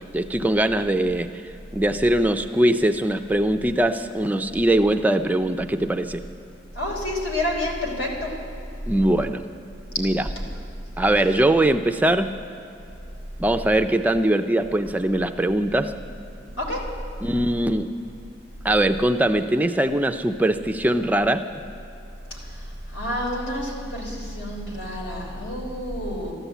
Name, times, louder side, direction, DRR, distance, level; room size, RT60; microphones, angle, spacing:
voice 1, 0.1-1.3 1.7-6.2 8.9-9.4 10.0-10.3 11.0-12.3 13.4-15.9 17.2-17.9 18.6-21.4, right 1 dB, 10° right, 7 dB, 0.3 m, -21 dB
voice 2, 6.8-8.3 16.6-16.8 22.9-26.3, left 1 dB, 80° left, -1 dB, 3.6 m, -28 dB
13.5 x 11.5 x 8.1 m, 2.8 s
head